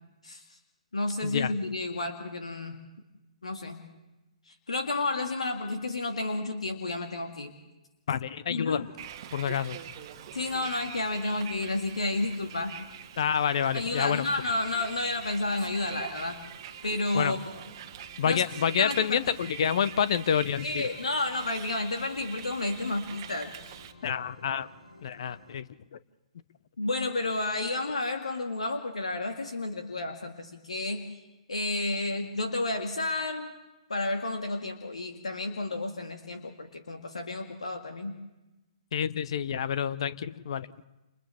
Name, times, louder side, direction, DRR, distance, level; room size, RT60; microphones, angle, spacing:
voice 1, 0.9-2.8 3.4-3.8 4.5-7.5 8.5-8.9 10.3-12.7 13.7-16.4 16.8-17.4 18.2-18.4 18.8-19.2 20.6-23.5 26.8-31.0 31.5-33.5 33.9-38.1, left 2 dB, 70° left, 5 dB, 1.9 m, -31 dB
voice 2, 8.1-8.8 9.3-9.8 13.2-14.2 17.1-17.4 18.2-20.9 24.0-24.7 25.0-25.6 25.9-26.0 38.9-40.7, left 8 dB, 50° left, 15 dB, 0.8 m, -28 dB
sound 1, 8.8-25.6, left 2 dB, 85° left, 6.0 m, -56 dB
Bus, 9.0-23.9, right 10 dB, 40° right, 1.3 m, -44 dB
30.0 x 29.0 x 3.5 m, 1.0 s
figure-of-eight pair, 125°, 4 cm